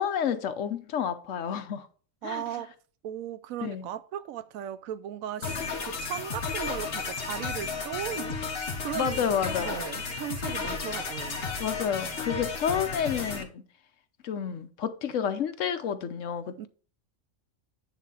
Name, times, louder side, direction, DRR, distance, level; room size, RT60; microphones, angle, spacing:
voice 1, 0.0-1.9 2.2-2.4 3.6-3.9 5.4-5.7 8.9-9.8 11.6-13.6 14.2-16.7, left 8 dB, 70° left, 1.1 m, -30 dB
voice 2, 2.2-2.7 3.0-8.4 8.8-11.4 16.6-16.7, right 11 dB, 90° right, 1.0 m, -37 dB
sound 1, 5.4-13.4, left 4 dB, 50° left, 1.4 m, -33 dB
9.3 x 3.6 x 5.6 m
omnidirectional pair, 1.4 m